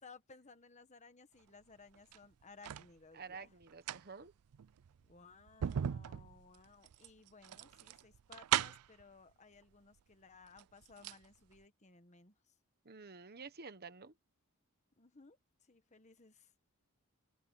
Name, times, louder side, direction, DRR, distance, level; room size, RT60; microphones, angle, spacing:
voice 1, 0.0-3.5 5.0-12.5 15.0-16.5, left 4 dB, 30° left, 1.3 m, -60 dB
sound 1, 1.9-2.9 3.6-9.0 10.0-10.1 10.4-11.3 11.5-11.6, right 10 dB, 85° right, 0.4 m, -39 dB
voice 2, 3.1-4.3 12.8-14.1, right 4 dB, 45° right, 1.3 m, -50 dB
open air
head